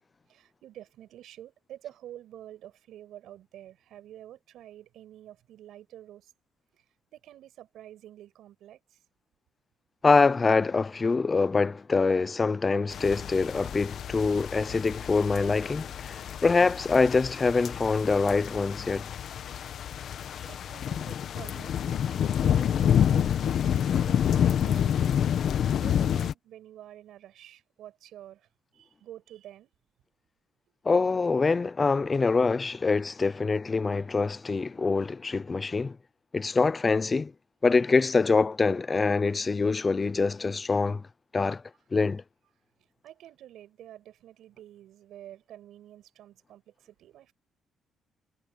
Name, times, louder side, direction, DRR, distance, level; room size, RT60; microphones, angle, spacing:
voice 1, 0.3-6.3 6.7-6.8 7.1-9.0 19.8-19.9 20.4-25.1 25.8-28.5 28.7-29.7 43.0-47.3, right 12 dB, 80° right, 7.2 m, -48 dB
voice 2, 10.0-19.1 30.9-36.0 36.3-37.3 37.6-41.0 41.3-41.6 41.9-42.2, left 4 dB, 30° left, 0.5 m, -25 dB
sound 1, 12.9-26.3, left 9 dB, 65° left, 1.3 m, -28 dB
cardioid pair, 90°, 0 cm